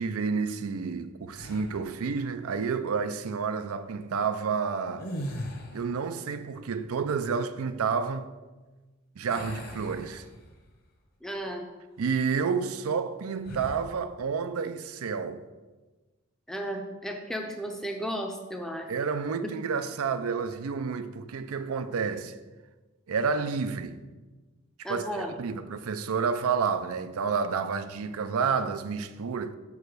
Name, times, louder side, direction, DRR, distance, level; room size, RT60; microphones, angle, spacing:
voice 1, 0.0-5.1 5.7-8.3 9.2-10.2 12.0-15.4 18.9-22.4 23.1-24.0 24.8-29.5, right 5 dB, 75° right, 0.4 m, -30 dB
sound 1, 1.3-2.0 4.9-6.0 9.3-10.7 11.2-11.4 13.4-13.9, equal, 45° left, 1.0 m, -39 dB
voice 2, 11.2-11.7 16.5-18.9 24.8-25.3, equal, ahead, 0.5 m, -34 dB
5.7 x 4.7 x 6.4 m
head